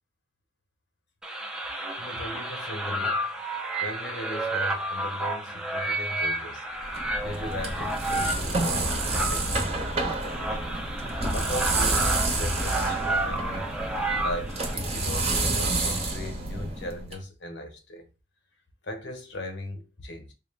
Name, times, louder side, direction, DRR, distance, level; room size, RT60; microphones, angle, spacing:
sound 1, 1.2-14.7, right 2 dB, 5° right, 0.5 m, -31 dB
voice 1, 1.7-3.2 3.7-13.7 14.2-18.1 18.8-20.3, left 1 dB, 85° left, 0.9 m, -38 dB
sound 2, 6.8-17.1, right 2 dB, 35° right, 0.8 m, -29 dB
3.8 x 2.4 x 3.2 m
head